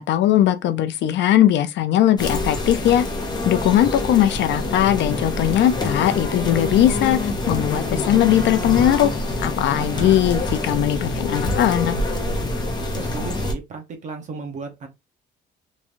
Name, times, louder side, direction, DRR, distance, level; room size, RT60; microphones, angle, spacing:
voice 1, 0.0-3.0 3.4-9.1 9.4-12.0, left 11 dB, 75° left, 0.5 m, -19 dB
sound 1, 2.2-13.5, left 2 dB, 20° left, 0.7 m, -26 dB
voice 2, 9.8-10.4 12.8-14.9, right 4 dB, 40° right, 0.9 m, -35 dB
3.7 x 3.1 x 2.6 m
cardioid pair, 180°, 19 cm